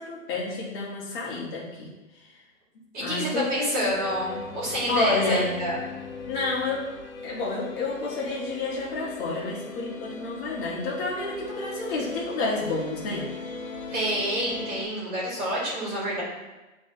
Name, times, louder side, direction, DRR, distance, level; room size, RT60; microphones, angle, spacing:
voice 1, 0.0-1.9 3.0-3.9 4.9-5.5 6.3-6.8 7.2-13.3, left 3 dB, 40° left, -5 dB, 1.7 m, -29 dB
voice 2, 2.9-5.8 13.9-16.2, right 1 dB, 20° right, -6 dB, 2.1 m, -28 dB
sound 1, 3.8-14.8, left 4 dB, 90° left, 0.9 m, -38 dB
9.7 x 3.5 x 2.9 m, 1.1 s
hypercardioid pair, 145°, 40 cm